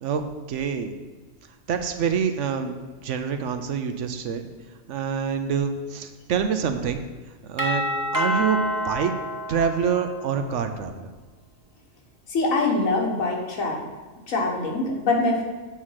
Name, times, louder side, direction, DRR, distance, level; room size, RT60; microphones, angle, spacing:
voice 1, 0.5-0.9 1.7-2.8 3.0-4.4 4.9-7.0 7.5-7.8 8.1-9.1 9.5-11.1, right 7 dB, 70° right, 8 dB, 0.9 m, -26 dB
Doorbell, 7.6-10.4, equal, 20° right, 0.8 m, -28 dB
voice 2, 12.3-13.9 14.3-15.4, left 2 dB, 85° left, 0 dB, 1.7 m, -24 dB
7.1 x 4.8 x 5.7 m, 1.3 s
omnidirectional pair, 1.4 m